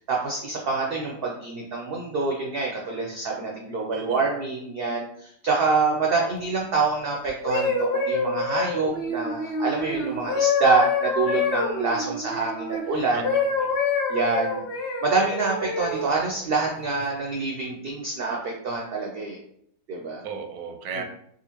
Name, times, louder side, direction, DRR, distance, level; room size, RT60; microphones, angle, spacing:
voice 1, 0.1-13.4 14.1-14.6 15.0-19.4 19.9-20.2 20.9-21.0, right 4 dB, 70° right, -1 dB, 0.5 m, -26 dB
voice 2, 3.9-4.3 13.1-13.8 20.2-21.0, right 5 dB, 85° right, 5 dB, 1.1 m, -36 dB
sound 1, 7.3-12.8 13.2-16.1 16.8-17.0, left 3 dB, 55° left, 0.7 m, -26 dB
3.7 x 2.4 x 2.9 m, 0.70 s
omnidirectional pair, 1.5 m